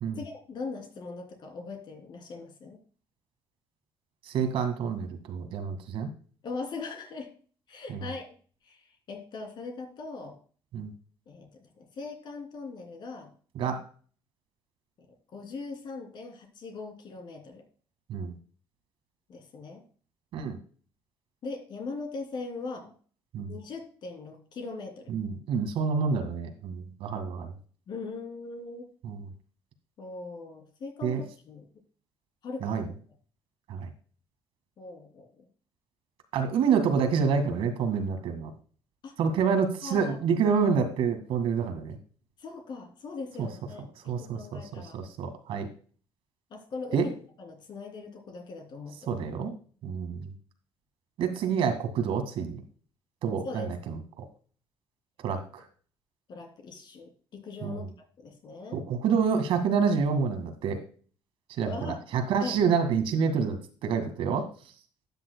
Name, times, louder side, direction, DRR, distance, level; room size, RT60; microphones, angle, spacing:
voice 1, 0.2-2.8 6.4-7.3 7.7-8.3 8.6-10.4 11.3-13.3 15.0-15.1 15.3-17.6 19.3-19.8 21.4-22.9 23.5-25.1 27.9-28.9 30.0-31.6 32.4-32.8 34.8-35.4 39.0-39.1 39.8-40.2 42.4-45.0 46.5-49.2 53.4-53.7 56.3-57.8 58.2-58.8 61.6-62.0 62.4-62.5, left 3 dB, 50° left, 3 dB, 3.2 m, -40 dB
voice 2, 4.2-6.1 7.9-8.1 10.7-10.9 13.6-13.8 18.1-18.4 20.3-20.6 23.3-23.5 25.1-27.5 29.0-29.3 31.0-31.2 32.6-32.9 33.7-33.9 36.3-38.5 39.2-42.0 43.4-43.5 44.1-45.7 46.9-47.1 49.1-49.5 49.8-50.3 51.2-52.6 53.2-54.2 55.2-55.6 57.6-57.8 58.7-60.8 61.5-64.5, right 6 dB, 75° right, 7 dB, 1.9 m, -28 dB
12.5 x 9.3 x 2.3 m, 0.42 s
cardioid pair, 140°, 10 cm